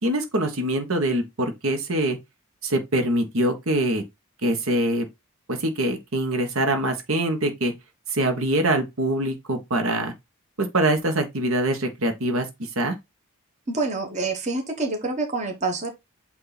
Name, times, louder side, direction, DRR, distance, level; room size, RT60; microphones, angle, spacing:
voice 1, 0.0-2.2 2.6-4.0 4.4-5.1 5.5-7.7 8.1-10.1 10.6-12.5 12.7-12.9, right 1 dB, 70° right, 1.4 m, -24 dB
voice 2, 13.7-15.9, right 3 dB, 30° right, 1.4 m, -27 dB
8.5 x 2.9 x 4.1 m
head